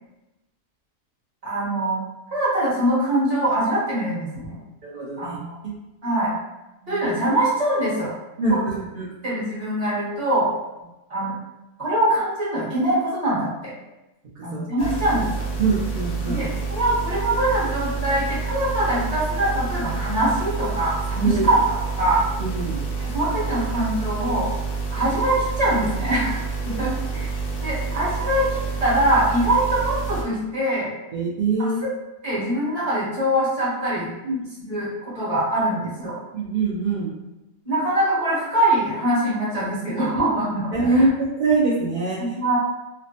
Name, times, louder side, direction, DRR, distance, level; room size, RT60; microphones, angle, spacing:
voice 1, 1.4-2.0 2.3-4.5 5.2-5.5 6.0-6.3 6.9-8.1 8.5-8.7 9.2-10.5 11.1-11.3 11.8-13.7 14.4-15.3 16.2-21.6 22.0-22.2 23.0-24.5 24.9-27.3 27.6-30.9 31.6-31.9 32.2-34.1 34.7-36.2 37.6-41.0 42.2-42.6, right 1 dB, 30° right, -8 dB, 1.1 m, -23 dB
voice 2, 4.8-5.4 5.6-5.7 6.8-7.1 8.4-9.1 14.4-14.6 15.6-16.4 21.2-21.5 22.4-22.8 26.7-26.8 31.1-31.8 34.2-34.4 36.3-37.1 40.7-42.2, right 3 dB, 55° right, -8 dB, 0.5 m, -23 dB
sound 1, 14.8-30.2, right 4 dB, 90° left, 1.1 m, -28 dB
3.2 x 2.1 x 2.7 m, 0.99 s
omnidirectional pair, 1.4 m